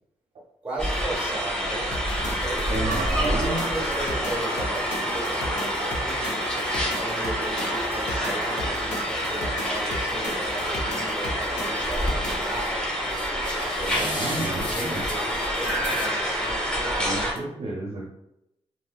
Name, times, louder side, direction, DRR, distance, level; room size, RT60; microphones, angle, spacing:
voice 1, 0.6-6.4 7.0-13.4 13.7-17.4, right 2 dB, 10° right, -5 dB, 1.4 m, -37 dB
sound 1, 0.8-17.3, equal, 5° left, 0.9 m, -27 dB
sound 2, 1.9-12.6, left 1 dB, 80° left, 0.6 m, -36 dB
voice 2, 2.7-3.6 13.9-15.1 16.9-18.1, right 2 dB, 55° right, -3 dB, 0.6 m, -31 dB
sound 3, 12.5-12.7 13.1-16.5 17.0-17.1 17.4-17.5, left 1 dB, 40° left, 0.6 m, -37 dB
2.8 x 2.8 x 2.3 m, 0.84 s
cardioid pair, 95°, 12 cm